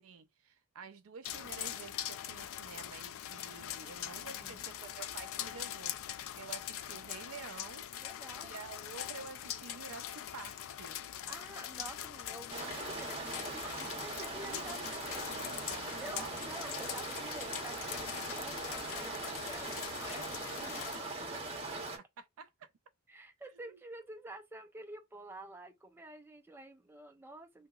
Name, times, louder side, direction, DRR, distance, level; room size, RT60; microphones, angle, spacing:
voice 1, 0.0-6.0 6.4-7.9 8.4-11.0 14.5-14.6 15.2-16.5 21.7-22.7 23.6-23.8, right 5 dB, 65° right, 0.4 m, -50 dB
sound 1, 1.2-21.0, left 11 dB, 60° left, 0.3 m, -42 dB
voice 2, 4.2-4.7 8.0-8.6 11.2-15.4 16.0-21.5 23.1-27.7, right 2 dB, 10° right, 0.5 m, -50 dB
sound 2, 12.5-22.0, right 3 dB, 25° right, 0.8 m, -41 dB
2.9 x 2.7 x 2.3 m
head